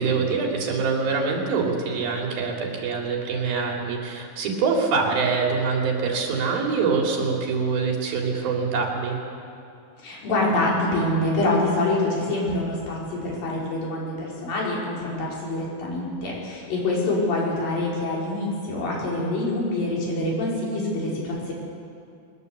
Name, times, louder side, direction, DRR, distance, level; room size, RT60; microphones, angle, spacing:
voice 1, 0.0-9.2, right 4 dB, 75° right, 0 dB, 4.8 m, -24 dB
voice 2, 10.0-21.5, left 2 dB, 70° left, -4 dB, 6.7 m, -25 dB
22.0 x 19.5 x 8.2 m, 2.5 s
omnidirectional pair, 4.2 m